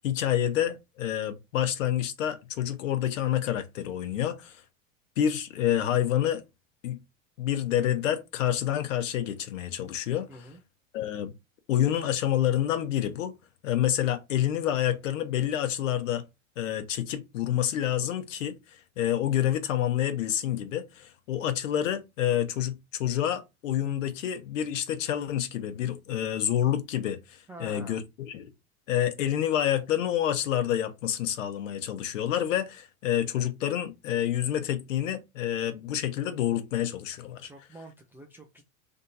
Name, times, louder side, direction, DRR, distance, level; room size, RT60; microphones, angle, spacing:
voice 1, 0.0-4.6 5.2-6.4 6.8-7.0 7.4-10.3 10.9-11.3 11.7-13.3 13.6-16.2 16.6-28.5 28.9-37.5, left 11 dB, 65° left, 1.0 m, -28 dB
voice 2, 10.3-10.6 27.5-28.0 37.4-38.6, right 1 dB, 5° right, 0.3 m, -47 dB
3.5 x 2.7 x 4.1 m
figure-of-eight pair, 85°, 42 cm